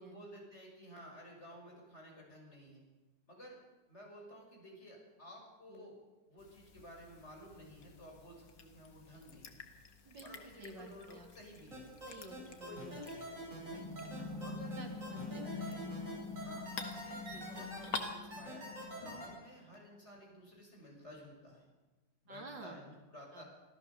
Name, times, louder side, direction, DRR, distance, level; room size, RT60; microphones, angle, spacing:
voice 1, 0.0-2.8 3.3-3.6 3.9-5.9 6.3-9.7 10.2-11.8 12.6-13.3 14.3-14.8 15.2-15.8 16.3-21.7 22.2-23.4, equal, 35° left, 0 dB, 6.4 m, -54 dB
sound 1, 6.4-18.1, left 5 dB, 75° left, 2.3 m, -50 dB
voice 2, 10.1-11.3 12.1-12.9 13.3-13.9 14.1-14.3 14.7-15.6 17.3-17.5 22.3-22.8 23.3-23.4, right 3 dB, 85° right, 2 dB, 3.6 m, -52 dB
sound 2, 11.7-19.2, right 1 dB, 45° right, 8.7 m, -45 dB
sound 3, 13.7-19.4, left 3 dB, 15° left, 2.1 m, -45 dB
26.0 x 14.5 x 6.9 m, 1.2 s
omnidirectional pair, 1.9 m